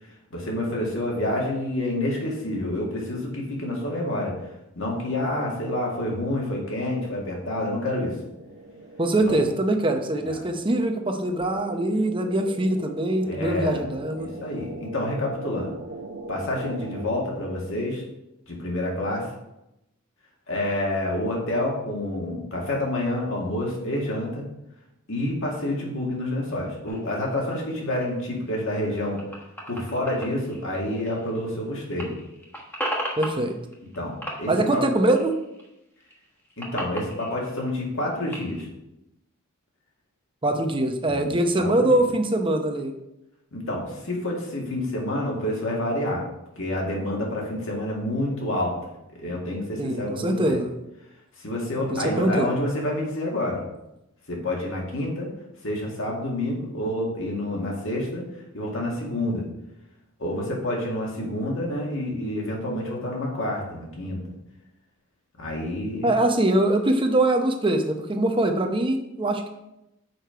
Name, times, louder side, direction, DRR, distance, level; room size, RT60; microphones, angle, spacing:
voice 1, 0.3-4.4 4.8-8.2 9.3-9.4 10.2-10.4 13.2-13.9 14.2-15.7 16.3-18.0 18.5-19.3 20.5-24.4 25.1-29.2 29.7-32.1 34.0-34.1 34.4-34.8 36.6-38.7 41.0-42.1 43.5-46.2 46.6-48.8 49.2-50.6 51.4-53.6 54.3-55.3 55.6-58.2 58.5-59.5 60.2-64.2 65.4-66.1, left 1 dB, 65° left, -2 dB, 2.0 m, -28 dB
sound 1, 8.0-17.2, right 2 dB, 55° right, 0.8 m, -41 dB
voice 2, 9.0-14.3 33.2-33.6 34.5-35.3 40.4-42.9 49.8-50.7 51.9-52.5 66.0-69.5, right 1 dB, 25° right, 5 dB, 0.8 m, -23 dB
sound 2, 26.9-31.6 31.9-34.0 34.2-35.7 36.0-38.6, equal, 10° left, 1.3 m, -36 dB
6.6 x 5.4 x 4.5 m, 0.88 s
head